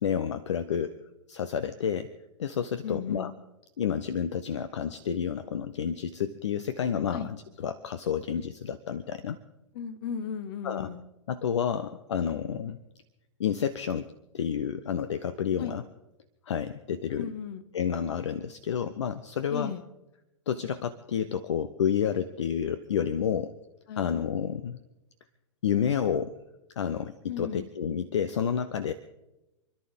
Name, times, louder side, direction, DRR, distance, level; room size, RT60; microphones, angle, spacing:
voice 1, 0.0-1.0 1.3-2.1 2.4-3.3 3.8-7.2 7.6-9.4 10.6-10.9 11.3-12.8 13.4-14.1 14.3-15.8 16.5-17.3 17.7-19.7 20.5-23.5 24.0-24.8 25.6-26.4 26.8-28.9, left 8 dB, 60° left, 12 dB, 0.8 m, -30 dB
voice 2, 2.8-3.3 7.1-7.3 9.7-11.0 15.6-15.8 17.2-17.6 19.5-19.8 23.9-24.1 27.3-27.7, left 7 dB, 45° left, 11 dB, 1.3 m, -35 dB
28.5 x 11.0 x 3.7 m, 0.94 s
figure-of-eight pair, 105°, 17 cm